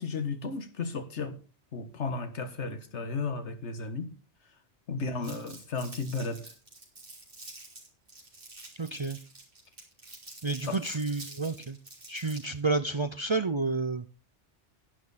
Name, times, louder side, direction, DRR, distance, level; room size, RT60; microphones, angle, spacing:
voice 1, 0.0-1.4 1.7-4.1 4.9-6.5 10.7-10.8, left 4 dB, 85° left, 9 dB, 1.7 m, -34 dB
voice 2, 5.0-5.4 8.8-9.2 10.4-11.8 12.1-14.0, right 3 dB, 35° right, 11 dB, 0.5 m, -30 dB
Crumpling crinkling, 5.2-12.6, right 2 dB, 50° right, 3.9 m, -48 dB
11.0 x 11.0 x 4.1 m, 0.34 s
omnidirectional pair, 1.2 m